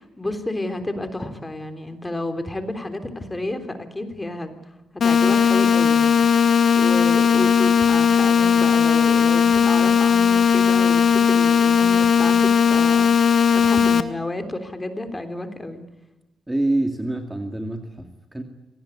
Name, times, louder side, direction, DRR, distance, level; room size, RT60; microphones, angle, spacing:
voice 1, 0.0-4.6 5.0-13.1 13.5-15.8, left 1 dB, 15° left, 8 dB, 3.4 m, -31 dB
sound 1, 5.0-14.0, left 7 dB, 55° left, 1.8 m, -17 dB
voice 2, 16.5-18.4, right 2 dB, 10° right, 4 dB, 2.4 m, -26 dB
27.0 x 19.0 x 9.8 m, 1.0 s
cardioid pair, 120°, 0 cm